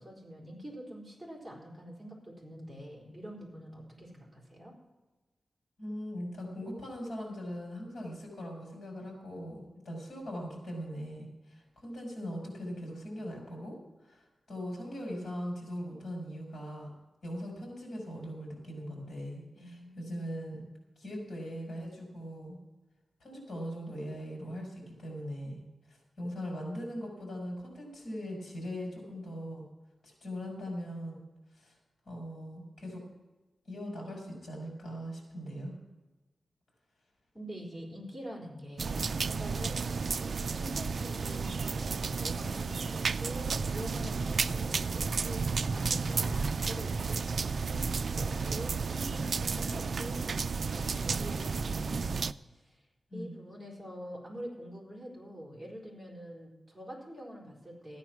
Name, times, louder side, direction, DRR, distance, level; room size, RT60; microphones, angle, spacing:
voice 1, 0.0-4.7 19.5-20.1 37.3-50.3 50.7-52.8 53.1-58.0, equal, ahead, -4 dB, 4.3 m, -45 dB
voice 2, 5.8-16.9 17.2-20.7 21.0-22.6 23.2-25.6 25.9-29.7 30.0-31.2 31.5-31.7 32.1-33.0 33.6-35.7 41.4-41.5 53.1-53.3, equal, 65° left, -1 dB, 5.9 m, -40 dB
sound 1, 38.8-52.3, right 5 dB, 55° right, 0.3 m, -32 dB
14.0 x 9.8 x 6.0 m, 1.2 s
wide cardioid pair, 160°, 0 cm